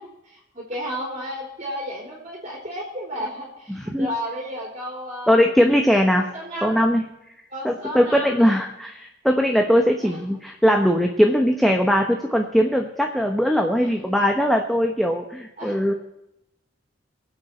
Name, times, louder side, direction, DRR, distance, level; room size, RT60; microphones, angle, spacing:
voice 1, 0.0-5.4 6.3-6.8 7.5-8.5 10.0-10.2 13.8-13.9 15.6-15.8, equal, 35° right, -2 dB, 3.2 m, -33 dB
voice 2, 3.7-4.1 5.3-6.3 6.6-7.0 7.6-15.9, equal, ahead, 2 dB, 0.9 m, -20 dB
23.5 x 8.0 x 4.3 m, 0.91 s
head